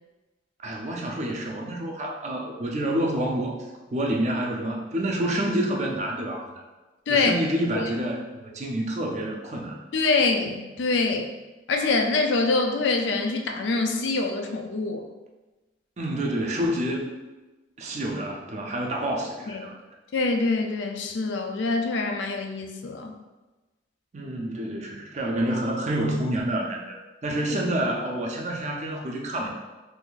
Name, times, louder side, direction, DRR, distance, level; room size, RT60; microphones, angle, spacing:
voice 1, 0.6-3.6 3.9-6.6 7.1-9.8 16.0-17.1 17.8-19.7 24.1-27.0 27.2-29.5, right 1 dB, 40° right, 0 dB, 0.4 m, -28 dB
voice 2, 9.9-11.3 11.7-15.0 19.5-19.7 20.1-23.1, left 3 dB, 80° left, 4 dB, 0.4 m, -25 dB
2.6 x 2.4 x 3.8 m, 1.2 s
head